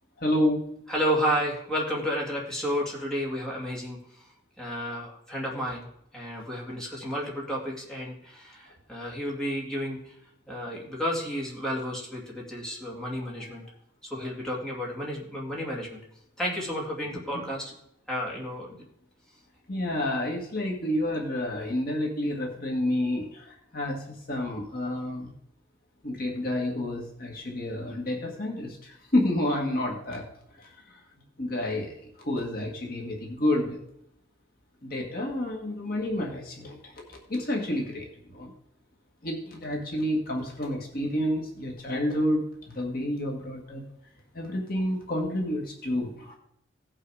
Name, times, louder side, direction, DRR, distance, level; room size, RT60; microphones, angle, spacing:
voice 1, 0.2-0.6 19.7-25.3 26.0-30.2 30.6-31.0 31.4-33.8 34.8-38.5 39.2-43.8 44.3-46.4, left 1 dB, 50° left, 0 dB, 1.8 m, -29 dB
voice 2, 0.9-4.3 4.6-5.9 6.1-10.2 10.5-13.7 14.0-16.0 16.4-17.7 18.1-18.8, equal, 5° left, -4 dB, 2.3 m, -31 dB
17.0 x 5.8 x 4.9 m, 0.75 s
head